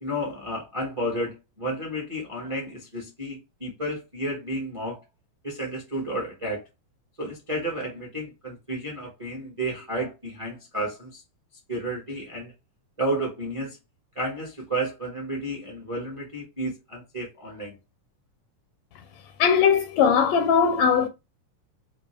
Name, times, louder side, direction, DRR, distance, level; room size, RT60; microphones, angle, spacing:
voice 1, 0.0-5.0 5.4-6.7 7.2-11.2 11.7-12.5 13.0-13.8 14.1-17.8, right 1 dB, 45° right, 0.4 m, -32 dB
voice 2, 19.4-21.1, left 6 dB, 80° left, 1.5 m, -19 dB
5.1 x 2.9 x 3.2 m
omnidirectional pair, 3.6 m